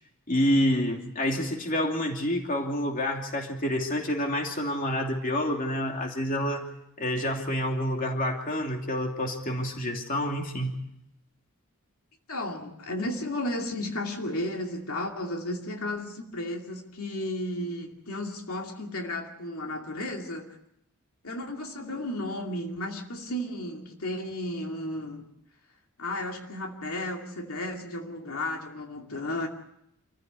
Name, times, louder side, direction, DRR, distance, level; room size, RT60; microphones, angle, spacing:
voice 1, 0.3-6.7 7.0-10.7, equal, 40° left, 2 dB, 2.8 m, -28 dB
voice 2, 12.3-20.6 21.2-25.3 26.0-29.5, left 1 dB, 85° left, 2 dB, 2.5 m, -33 dB
27.5 x 15.0 x 8.1 m, 0.80 s
head